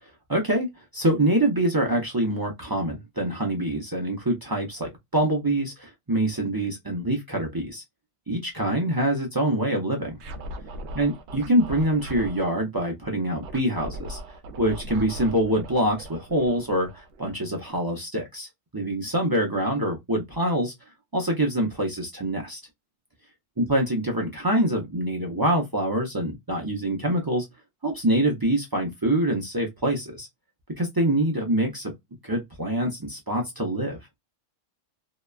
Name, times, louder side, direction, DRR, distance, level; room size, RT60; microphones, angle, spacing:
voice 1, 0.3-0.7 0.9-7.8 8.3-10.2 11.0-14.2 14.6-18.5 18.7-20.7 21.1-22.6 23.6-27.5 27.8-30.3 30.8-31.9 32.2-34.0, right 1 dB, 35° right, 0.3 m, -25 dB
Scratching (performance technique), 10.1-12.5 13.4-17.7, right 1 dB, 65° right, 0.8 m, -39 dB
2.8 x 2.1 x 2.3 m
omnidirectional pair, 1.3 m